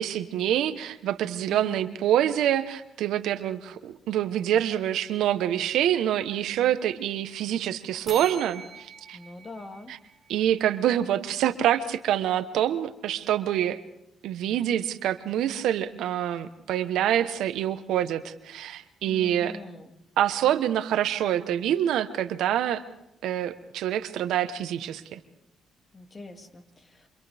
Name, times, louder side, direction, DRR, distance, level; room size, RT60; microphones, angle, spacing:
voice 1, 0.0-9.2 9.9-10.0 10.3-13.8 14.2-19.6 20.2-22.8 23.2-25.2, right 11 dB, 85° right, 11 dB, 1.1 m, -26 dB
sound 1, 8.1-10.8, right 4 dB, 30° right, 5.4 m, -44 dB
voice 2, 9.1-9.9 19.1-19.9 25.9-27.1, left 2 dB, 35° left, 5 dB, 2.5 m, -43 dB
29.0 x 27.0 x 3.5 m, 0.86 s
cardioid pair, 90°, 0 cm